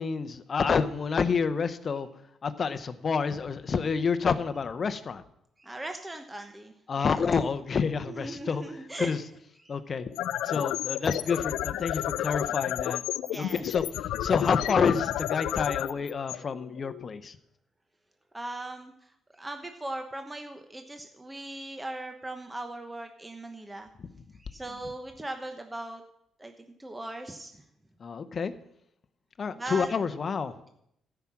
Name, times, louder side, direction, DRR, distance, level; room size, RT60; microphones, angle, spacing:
voice 1, 0.0-2.1 2.4-5.2 6.9-8.6 9.0-9.2 9.7-10.1 10.4-13.0 13.3-13.8 14.2-17.4 28.0-28.5 29.4-30.5, left 5 dB, 45° left, 10 dB, 0.8 m, -28 dB
voice 2, 5.6-7.1 8.0-9.2 9.6-9.7 13.3-13.6 18.3-23.9 24.3-26.0 26.4-27.6 29.5-29.9, right 1 dB, 15° right, 5 dB, 1.0 m, -39 dB
sound 1, 10.0-17.1, left 13 dB, 90° left, 0.4 m, -31 dB
14.0 x 5.9 x 7.5 m, 0.76 s
cardioid pair, 90°, 0 cm